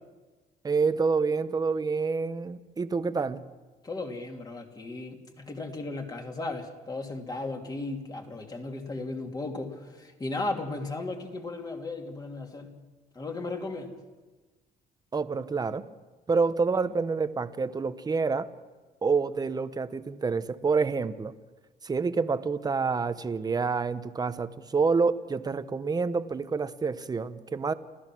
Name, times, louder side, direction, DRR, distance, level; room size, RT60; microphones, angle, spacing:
voice 1, 0.6-3.4 15.1-15.8 16.3-18.5 19.0-21.3 21.8-27.7, right 4 dB, 25° right, 12 dB, 1.0 m, -27 dB
voice 2, 3.8-12.7 13.1-14.0, left 2 dB, 25° left, 3 dB, 2.9 m, -35 dB
29.0 x 14.5 x 6.2 m, 1.3 s
cardioid pair, 110°, 17 cm